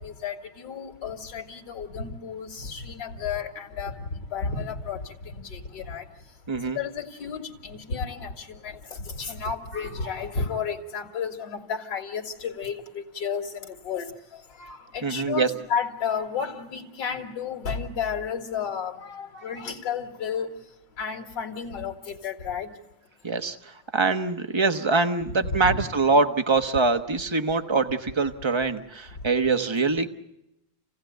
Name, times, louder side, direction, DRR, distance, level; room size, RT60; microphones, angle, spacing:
voice 1, 0.0-6.0 6.8-8.8 9.0-14.1 14.6-20.5 21.0-22.7 25.5-25.8, left 6 dB, 60° left, 2 dB, 2.7 m, -32 dB
voice 2, 6.5-6.8 15.0-15.5 23.2-30.1, right 4 dB, 25° right, 8 dB, 0.6 m, -24 dB
28.5 x 17.0 x 9.2 m, 0.90 s
omnidirectional pair, 2.2 m